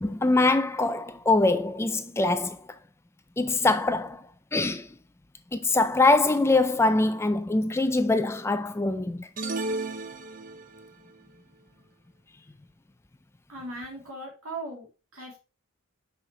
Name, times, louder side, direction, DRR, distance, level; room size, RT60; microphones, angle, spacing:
voice 1, 0.0-2.8 3.4-4.2 4.5-4.9 5.5-9.3, left 2 dB, 10° left, 0.3 m, -23 dB
sound 1, 9.4-10.9, right 2 dB, 35° right, 0.7 m, -33 dB
voice 2, 13.5-15.4, right 2 dB, 70° right, 3.1 m, -39 dB
6.4 x 5.7 x 3.2 m
head